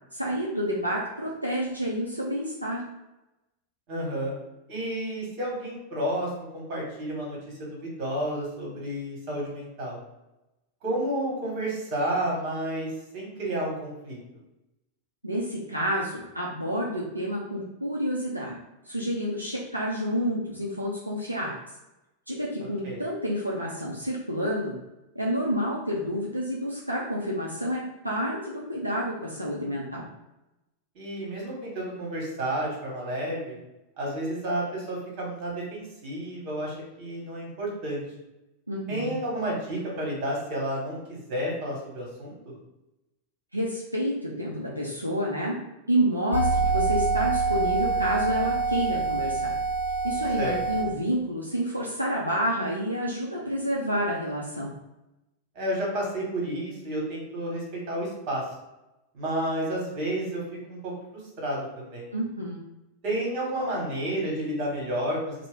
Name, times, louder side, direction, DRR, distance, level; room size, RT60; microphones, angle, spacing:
voice 1, 0.1-2.8 15.2-18.6 18.8-21.5 22.3-24.7 25.2-30.1 38.7-39.1 43.5-45.6 45.9-49.5 50.0-54.7 62.1-62.6, equal, 85° right, -4 dB, 0.5 m, -29 dB
voice 2, 3.9-4.3 4.7-10.0 10.8-14.2 22.8-23.0 30.9-33.6 34.0-38.0 38.9-42.5 50.4-50.6 55.5-58.4 59.1-60.4 60.7-62.1 63.0-65.3, right 1 dB, 45° right, -2 dB, 1.4 m, -31 dB
sound 1, 46.3-50.8, right 3 dB, 90° left, 0.6 m, -26 dB
2.9 x 2.1 x 3.4 m, 0.96 s
figure-of-eight pair, 90°, 0 cm